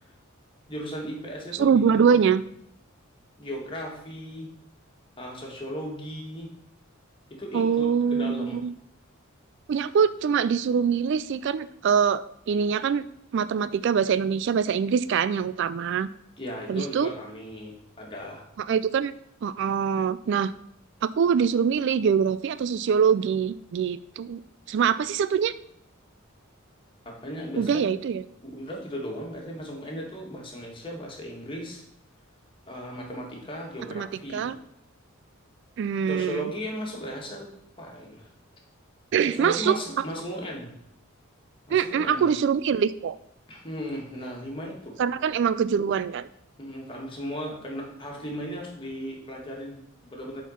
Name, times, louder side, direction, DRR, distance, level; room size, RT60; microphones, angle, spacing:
voice 1, 0.7-2.2 3.4-4.5 5.2-6.5 7.3-8.6 16.4-18.4 27.0-27.9 28.4-31.8 32.7-34.5 36.1-37.5 37.8-38.3 39.2-40.7 41.7-42.3 43.5-45.0 46.6-50.4, equal, 25° left, -1 dB, 2.0 m, -36 dB
voice 2, 1.5-2.4 7.5-8.7 9.7-13.1 13.3-16.1 16.7-17.1 18.6-19.1 19.4-20.5 21.0-24.4 24.7-25.5 27.6-28.2 33.9-34.1 34.3-34.6 35.8-36.5 39.1-40.0 41.7-43.2 45.0-46.3, right 7 dB, 55° right, 16 dB, 0.3 m, -24 dB
8.1 x 4.5 x 5.7 m, 0.74 s
head